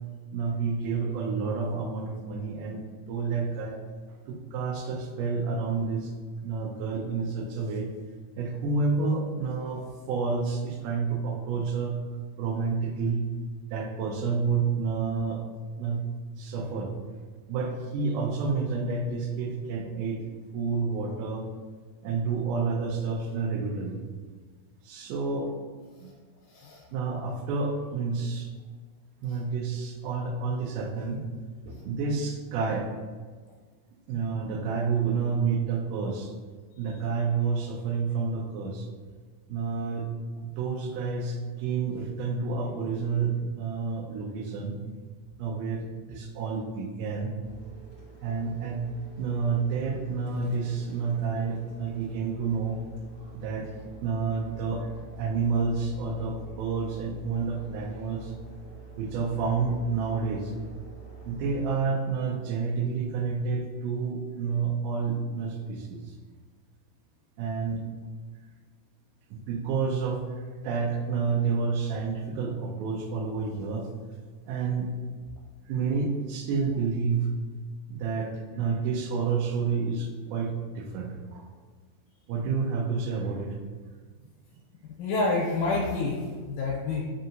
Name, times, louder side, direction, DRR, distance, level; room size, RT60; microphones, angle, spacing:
voice 1, 0.3-2.8 3.1-3.8 4.1-6.1 6.4-7.9 8.4-12.0 12.4-13.3 13.7-15.4 15.8-16.0 16.4-16.9 17.5-20.2 20.5-21.5 22.0-24.0 24.8-25.5 26.0-26.1 26.9-28.5 29.2-31.2 31.7-32.9 34.1-36.3 36.8-38.9 39.5-40.1 40.4-44.8 45.4-47.4 48.2-48.8 49.2-52.8 53.3-53.7 54.0-54.9 55.1-58.3 59.0-60.5 61.3-66.2 67.4-67.8 69.3-73.9 74.5-74.9 75.7-77.3 77.9-81.5 82.3-83.6, right 5 dB, 90° right, 1 dB, 2.2 m, -29 dB
sound 1, 19.3-19.4 20.2-20.4 21.1-21.3 22.0-22.2 23.0-23.1 23.9-24.0, left 3 dB, 70° left, 1.1 m, -52 dB
voice 2, 26.5-26.9 29.2-29.4 84.8-87.1, left 3 dB, 85° left, -4 dB, 2.2 m, -29 dB
sound 2, 47.4-61.7, right 5 dB, 70° right, 0.6 m, -47 dB
5.3 x 2.8 x 2.6 m, 1.5 s
omnidirectional pair, 3.6 m